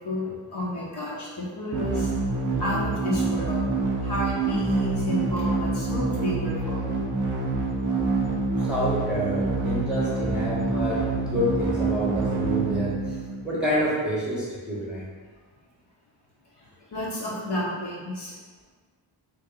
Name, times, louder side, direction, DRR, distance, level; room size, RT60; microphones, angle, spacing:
voice 1, 0.0-2.1 2.6-3.6 4.0-6.9 16.9-18.3, left 1 dB, 55° left, -6 dB, 1.0 m, -31 dB
sound 1, 1.7-13.6, right 3 dB, 40° right, 0.6 m, -26 dB
voice 2, 8.6-13.2 13.4-15.1, equal, ahead, -8 dB, 1.0 m, -28 dB
3.2 x 2.8 x 3.7 m, 1.4 s
wide cardioid pair, 90°, 48 cm